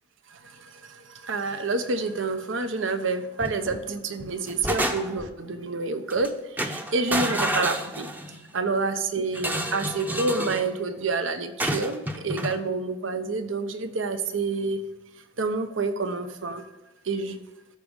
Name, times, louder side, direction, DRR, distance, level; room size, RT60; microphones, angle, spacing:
voice 1, 0.3-8.1 8.5-14.8 15.4-16.6 17.0-17.4, right 3 dB, 80° right, 9 dB, 0.9 m, -28 dB
sound 1, 3.4-3.8 4.2-5.3 6.1-6.3 6.6-8.4 9.3-10.7 11.6-12.6, right 1 dB, 10° right, 0.6 m, -29 dB
13.0 x 4.9 x 5.3 m, 1.1 s
head